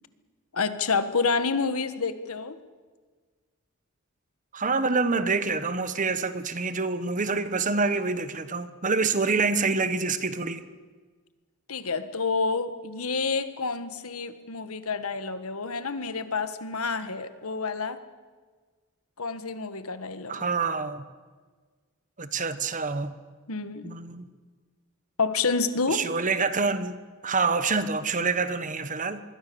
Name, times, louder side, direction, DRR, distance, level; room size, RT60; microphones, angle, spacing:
voice 1, 0.5-2.6 9.3-9.4 11.7-18.0 19.2-20.5 23.5-23.9 25.2-26.0, left 4 dB, 80° left, 11 dB, 1.5 m, -28 dB
voice 2, 4.5-10.6 20.3-21.0 22.2-23.1 23.8-24.3 25.9-27.0 27.2-29.2, right 4 dB, 35° right, 12 dB, 1.2 m, -26 dB
26.0 x 22.0 x 7.0 m, 1.4 s
head